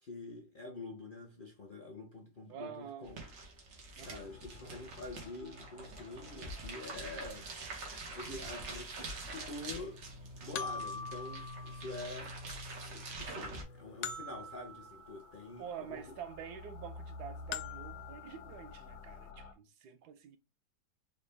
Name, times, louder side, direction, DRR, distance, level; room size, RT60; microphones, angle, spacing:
voice 1, 0.0-3.2 4.0-7.5 8.1-10.0 10.4-12.3 12.8-16.0, left 2 dB, 55° left, 0.5 m, -46 dB
voice 2, 2.5-3.1 4.0-4.2 8.4-8.6 15.6-20.4, right 8 dB, 70° right, 1.1 m, -47 dB
sound 1, 3.0-13.6, right 3 dB, 85° right, 1.9 m, -46 dB
sound 2, 4.0-19.5, left 3 dB, 85° left, 1.5 m, -52 dB
sound 3, 8.1-8.2 10.5-12.4 14.0-15.7 17.5-18.9, left 5 dB, 70° left, 1.0 m, -44 dB
4.9 x 2.2 x 3.3 m
omnidirectional pair, 1.9 m